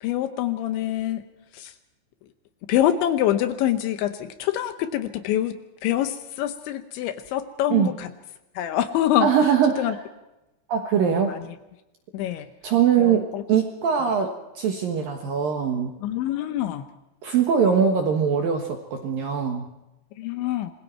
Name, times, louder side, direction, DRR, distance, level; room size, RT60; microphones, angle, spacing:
voice 1, 0.0-1.2 1.5-1.7 2.7-8.1 8.6-9.3 9.8-9.9 11.0-11.4 12.1-12.5 13.0-13.4 16.0-16.9 20.2-20.7, left 12 dB, 75° left, 10 dB, 3.0 m, -25 dB
voice 2, 9.2-9.9 10.7-11.3 12.6-16.0 17.2-19.7, right 7 dB, 65° right, 4 dB, 2.3 m, -22 dB
27.0 x 21.0 x 4.5 m, 0.97 s
omnidirectional pair, 5.8 m